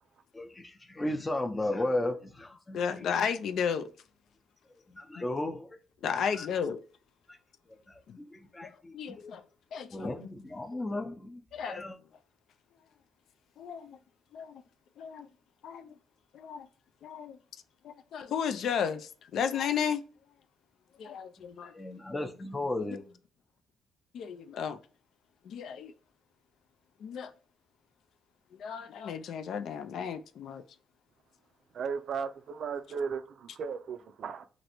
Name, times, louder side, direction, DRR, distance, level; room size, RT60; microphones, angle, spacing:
voice 1, 0.3-3.2 4.9-5.7 6.3-6.5 8.2-9.3 9.9-12.0 21.7-23.0, left 1 dB, 20° left, 0.6 m, -35 dB
voice 2, 2.7-3.9 5.2-5.3 6.0-6.8 8.1-8.2 8.6-9.4 9.7-10.3 11.5-11.8 13.6-14.0 14.3-14.6 15.0-15.3 15.6-15.9 16.3-16.7 17.0-17.4 17.8-20.0 21.0-21.7 22.9-23.0 24.1-24.8 25.5-25.9 27.0-27.3 28.6-30.6, left 7 dB, 70° left, 0.3 m, -34 dB
voice 3, 31.7-34.5, right 6 dB, 60° right, 0.3 m, -36 dB
3.0 x 2.5 x 2.9 m
cardioid pair, 90°, 0 cm